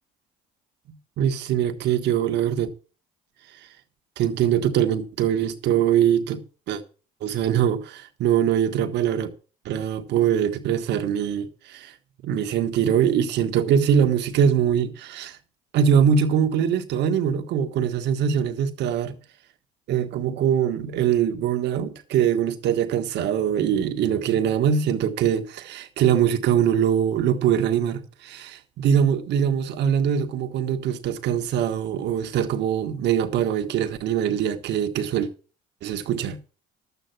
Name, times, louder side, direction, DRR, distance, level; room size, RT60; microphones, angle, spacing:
voice 1, 1.2-2.7 4.2-6.4 6.7-6.8 7.2-9.3 9.6-11.9 12.2-15.4 15.7-19.1 19.9-35.3 35.8-36.4, right 8 dB, 70° right, 1.5 m, -22 dB
12.0 x 8.2 x 5.9 m
supercardioid pair, 75°, 18 cm